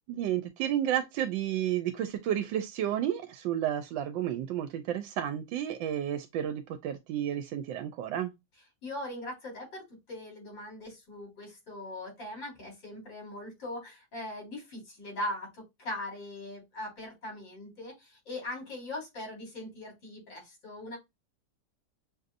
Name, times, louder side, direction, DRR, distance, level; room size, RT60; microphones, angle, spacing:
voice 1, 0.1-8.3, right 11 dB, 90° right, 1.3 m, -31 dB
voice 2, 8.8-21.0, left 1 dB, 75° left, 3.9 m, -40 dB
6.3 x 2.7 x 2.5 m
omnidirectional pair, 2.0 m